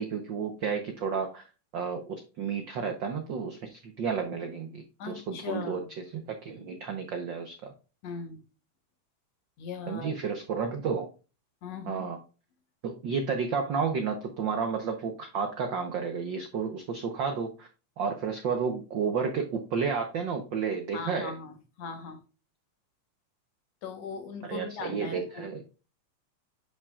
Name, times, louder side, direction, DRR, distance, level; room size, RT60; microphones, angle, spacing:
voice 1, 0.0-1.4 1.7-5.8 6.1-7.7 9.9-11.1 11.9-12.2 12.8-17.7 18.0-21.3 24.5-25.6, right 6 dB, 75° right, 1.0 m, -31 dB
voice 2, 5.0-5.9 8.0-8.4 9.6-10.1 11.6-12.0 20.9-22.2 23.8-25.5, left 5 dB, 65° left, 2.3 m, -39 dB
9.5 x 5.8 x 2.4 m
omnidirectional pair, 3.3 m